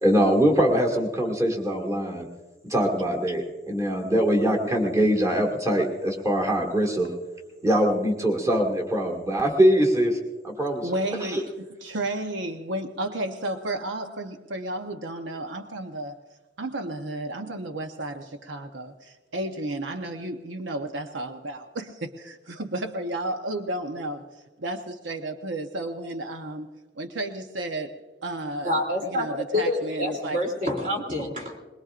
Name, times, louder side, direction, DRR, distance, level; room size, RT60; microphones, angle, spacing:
voice 1, 0.0-2.3 2.7-7.1 7.6-10.2 10.4-10.9 11.2-11.4, equal, 15° right, 0 dB, 1.8 m, -22 dB
voice 2, 10.8-16.2 16.6-26.7 26.9-28.7 29.0-30.4, right 1 dB, 80° right, 5 dB, 0.9 m, -32 dB
voice 3, 28.6-31.6, left 1 dB, 45° right, 0 dB, 3.0 m, -27 dB
21.5 x 21.5 x 2.5 m, 1.3 s
head